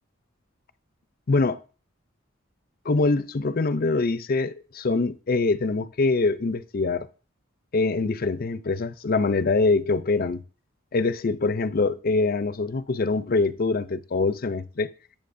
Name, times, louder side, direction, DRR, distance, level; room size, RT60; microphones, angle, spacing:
voice 1, 1.3-1.6 2.9-7.1 7.7-10.4 10.9-14.9, left 3 dB, 50° left, 0.5 m, -24 dB
21.5 x 7.3 x 2.6 m
head